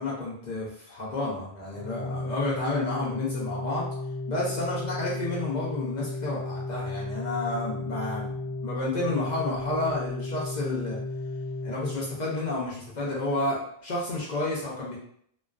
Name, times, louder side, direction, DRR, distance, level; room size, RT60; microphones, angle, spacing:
voice 1, 0.0-3.9 4.3-11.0 11.6-15.0, left 2 dB, 50° left, -5 dB, 0.6 m, -31 dB
Organ, 1.7-12.6, left 2 dB, 85° left, 1.0 m, -34 dB
2.3 x 2.2 x 2.3 m, 0.65 s
omnidirectional pair, 1.1 m